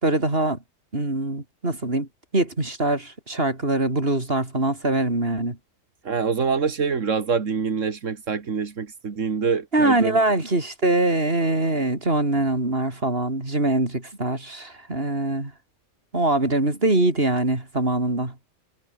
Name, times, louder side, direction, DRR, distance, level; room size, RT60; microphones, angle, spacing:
voice 1, 0.0-0.6 0.9-2.1 2.3-5.6 9.7-15.5 16.1-18.3, right 2 dB, 50° right, 5.0 m, -23 dB
voice 2, 6.0-10.2, right 5 dB, 85° right, 2.2 m, -25 dB
omnidirectional pair, 1.3 m